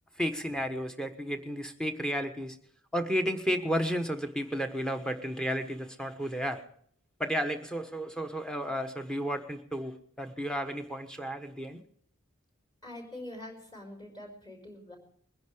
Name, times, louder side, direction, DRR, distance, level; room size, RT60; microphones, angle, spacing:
voice 1, 0.1-2.6 2.9-6.6 7.2-11.8, equal, 5° left, 6 dB, 1.2 m, -32 dB
voice 2, 12.8-15.0, left 1 dB, 20° left, 2 dB, 4.7 m, -44 dB
22.0 x 10.5 x 5.0 m, 0.64 s
head